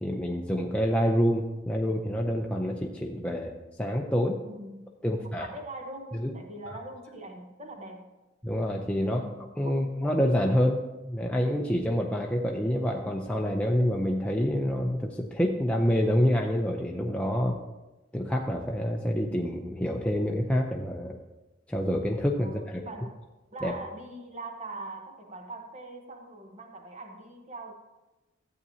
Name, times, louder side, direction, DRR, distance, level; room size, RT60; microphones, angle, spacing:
voice 1, 0.0-3.5 3.8-4.4 5.0-5.5 6.2-6.3 8.4-9.2 9.6-17.6 18.1-21.2 21.7-22.8 23.6-23.7, equal, 5° left, 0 dB, 0.5 m, -27 dB
voice 2, 4.4-8.1 9.0-9.9 22.4-23.1 23.5-27.7, right 2 dB, 35° right, 2 dB, 1.0 m, -42 dB
13.5 x 8.4 x 2.8 m, 1.1 s
head